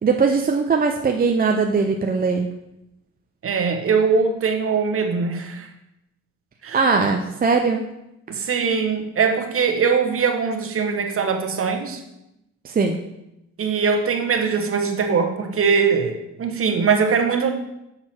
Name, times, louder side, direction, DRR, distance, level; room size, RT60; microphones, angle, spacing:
voice 1, 0.0-2.5 6.7-7.8 12.6-13.0, right 4 dB, 30° right, 3 dB, 0.6 m, -20 dB
voice 2, 3.4-5.7 6.6-7.0 8.3-12.0 13.6-17.5, right 5 dB, 45° right, 5 dB, 1.2 m, -21 dB
6.7 x 6.0 x 4.4 m, 0.87 s
cardioid pair, 90°, 30 cm